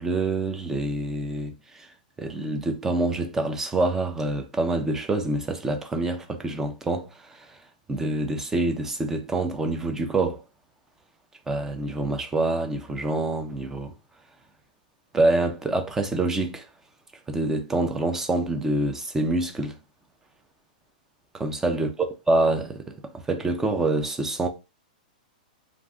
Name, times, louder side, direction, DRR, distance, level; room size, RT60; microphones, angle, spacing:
voice 1, 0.0-1.9 2.2-7.6 7.9-10.4 11.5-13.9 15.1-16.7 17.3-19.7 21.3-21.9 22.3-24.5, right 2 dB, 10° right, 0.4 m, -26 dB
2.5 x 2.4 x 3.4 m
hypercardioid pair, 150°, 5 cm